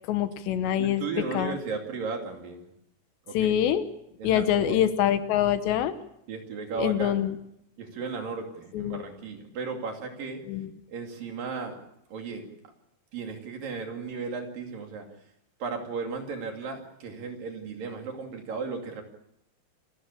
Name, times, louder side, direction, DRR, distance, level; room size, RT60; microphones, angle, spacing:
voice 1, 0.1-1.0 1.3-1.6 3.3-3.8 4.2-5.9 6.8-7.3 8.7-9.0 10.5-10.7, left 10 dB, 80° left, 11 dB, 3.3 m, -25 dB
voice 2, 0.8-2.7 3.3-3.5 4.2-4.8 6.3-7.2 7.8-10.4 10.9-11.8 12.1-12.5 13.1-15.1 15.6-19.0, right 4 dB, 55° right, 3 dB, 4.1 m, -35 dB
27.5 x 13.5 x 8.4 m, 0.79 s
omnidirectional pair, 5.0 m